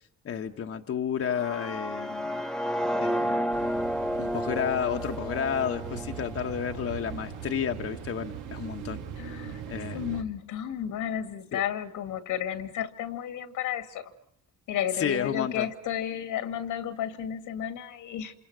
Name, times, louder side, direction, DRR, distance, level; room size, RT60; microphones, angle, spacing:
voice 1, 0.2-2.4 3.0-3.5 4.2-9.4 9.7-10.0 11.5-11.6 15.0-15.7, left 8 dB, 50° left, 5 dB, 1.2 m, -31 dB
sound 1, 1.2-7.2, equal, ahead, 1.1 m, -31 dB
sound 2, 3.5-10.2, right 8 dB, 85° right, 2.1 m, -40 dB
voice 2, 9.2-14.1 14.7-18.3, left 10 dB, 85° left, 9 dB, 2.3 m, -33 dB
28.5 x 27.5 x 6.2 m, 0.70 s
cardioid pair, 90°, 30 cm